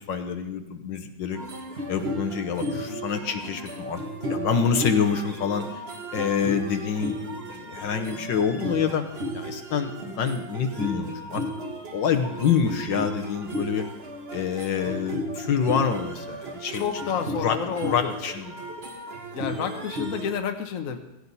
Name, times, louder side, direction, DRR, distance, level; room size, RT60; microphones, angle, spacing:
voice 1, 0.0-1.4 1.9-4.0 4.3-5.8 6.1-9.0 9.3-11.4 11.9-13.8 14.3-16.8 17.3-18.5, left 7 dB, 70° left, 6 dB, 1.6 m, -27 dB
sound 1, 1.3-20.3, equal, 35° right, 1.4 m, -34 dB
voice 2, 16.7-18.1 19.3-21.0, left 7 dB, 50° left, 6 dB, 1.2 m, -30 dB
16.0 x 15.5 x 4.1 m, 0.93 s
omnidirectional pair, 2.2 m